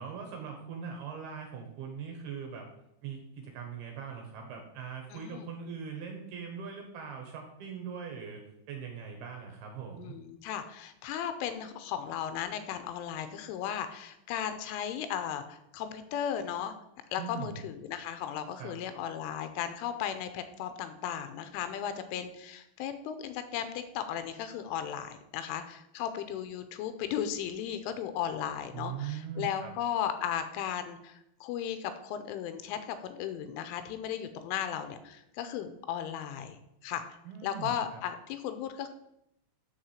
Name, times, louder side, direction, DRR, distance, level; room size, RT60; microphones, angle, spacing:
voice 1, 0.0-2.7 3.0-8.4 8.7-10.1 17.2-17.6 18.6-18.8 28.7-29.7 37.2-38.0, right 7 dB, 70° right, 2 dB, 2.6 m, -41 dB
voice 2, 5.1-5.5 10.0-16.7 17.1-37.0 37.4-38.9, left 9 dB, 85° left, 10 dB, 3.2 m, -36 dB
8.8 x 4.8 x 7.3 m, 0.80 s
omnidirectional pair, 5.7 m